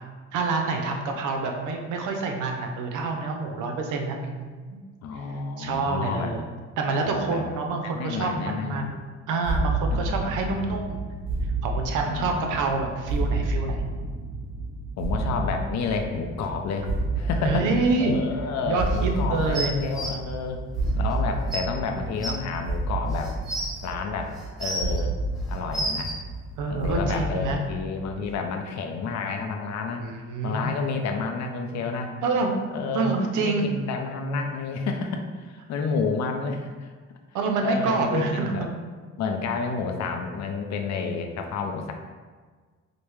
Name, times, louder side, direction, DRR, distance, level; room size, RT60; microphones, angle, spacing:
voice 1, 0.3-4.8 5.6-6.4 6.8-9.0 9.3-11.1 11.6-13.8 17.4-18.2 18.7-19.7 26.6-27.6 30.0-30.8 32.2-32.5 32.9-33.7 37.3-38.7, right 3 dB, 80° right, 3 dB, 0.6 m, -27 dB
voice 2, 5.0-6.3 7.0-7.4 7.8-8.9 9.9-10.8 12.1-12.6 13.1-13.3 15.0-17.7 18.0-20.6 21.0-23.3 23.8-24.3 24.6-25.1 25.5-26.1 26.7-30.0 30.4-32.1 32.7-33.1 33.4-36.9 37.6-38.7 39.2-41.9, left 4 dB, 65° left, 4 dB, 0.5 m, -30 dB
sound 1, 9.4-28.3, right 2 dB, 65° right, 1.2 m, -30 dB
sound 2, 19.5-20.1 21.1-21.2 21.5-21.6 22.2-22.3 23.1-23.7 24.4-25.0 25.5-26.1 27.1-27.2, right 1 dB, ahead, 1.0 m, -30 dB
5.0 x 2.1 x 3.1 m, 1.5 s
cardioid pair, 90°, 30 cm